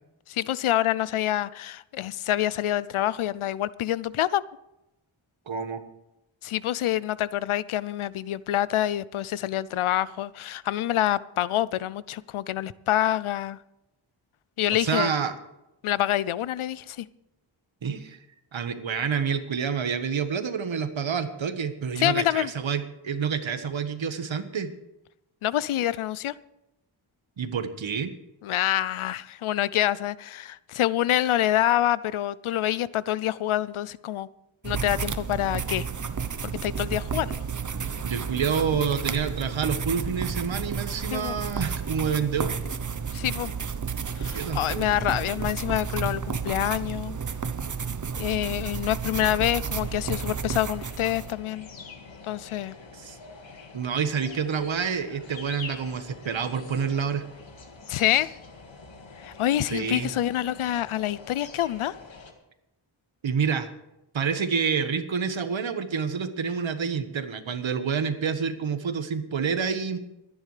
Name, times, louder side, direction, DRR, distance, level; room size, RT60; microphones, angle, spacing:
voice 1, 0.3-4.4 6.4-13.6 14.6-15.1 15.8-17.1 22.0-22.5 25.4-26.3 28.4-34.3 34.6-35.9 36.4-37.4 41.1-41.4 43.1-43.6 44.2-47.2 48.2-51.7 52.3-52.7 57.9-58.3 59.2-62.0, left 13 dB, 85° left, 19 dB, 0.6 m, -26 dB
voice 2, 5.5-5.8 14.7-15.3 17.8-18.2 18.5-24.7 27.4-28.1 38.0-42.5 44.3-45.0 52.9-53.2 53.7-57.2 59.7-60.1 63.2-63.7 64.1-70.0, right 6 dB, 70° right, 9 dB, 1.4 m, -28 dB
sound 1, 34.6-51.3, right 6 dB, 40° right, 0.9 m, -32 dB
sound 2, 49.8-62.3, left 4 dB, 65° left, 1.9 m, -45 dB
25.5 x 10.0 x 3.3 m, 0.91 s
wide cardioid pair, 75°, 48 cm